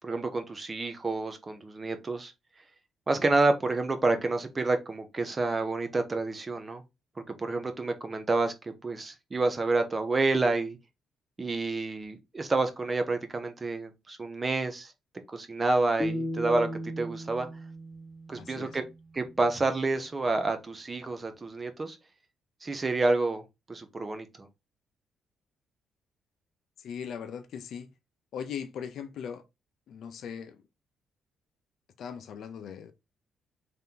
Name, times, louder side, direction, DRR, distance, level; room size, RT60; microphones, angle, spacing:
voice 1, 0.0-2.3 3.1-6.8 7.4-10.8 11.4-14.9 15.3-16.7 17.0-17.5 18.3-18.8 19.1-22.0 22.6-23.4 23.7-24.3, right 3 dB, 25° right, 0.9 m, -28 dB
sound 1, 16.0-19.1, equal, 10° left, 1.2 m, -36 dB
voice 2, 18.3-18.8 26.8-27.9 28.3-29.4 29.9-30.6 32.0-32.9, left 7 dB, 70° left, 0.6 m, -39 dB
3.3 x 2.9 x 3.8 m
cardioid pair, 90°, 0 cm